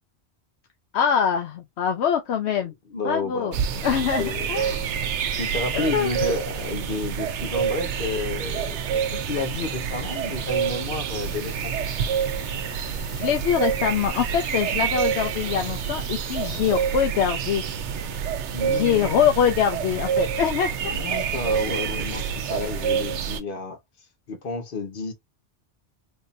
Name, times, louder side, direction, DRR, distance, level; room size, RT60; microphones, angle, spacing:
voice 1, 0.9-2.7 3.0-3.5 3.8-4.9 5.7-6.1 13.1-17.6 18.7-21.0, left 8 dB, 75° left, 0.8 m, -24 dB
voice 2, 2.6-3.9 4.2-4.6 5.4-11.8 18.5-19.3 20.9-23.8 24.3-25.1, left 3 dB, 55° left, 1.1 m, -31 dB
sound 1, 3.5-23.4, right 7 dB, 90° right, 0.9 m, -27 dB
sound 2, 11.2-17.0, left 6 dB, 35° left, 1.7 m, -45 dB
3.7 x 2.7 x 2.6 m
omnidirectional pair, 1.1 m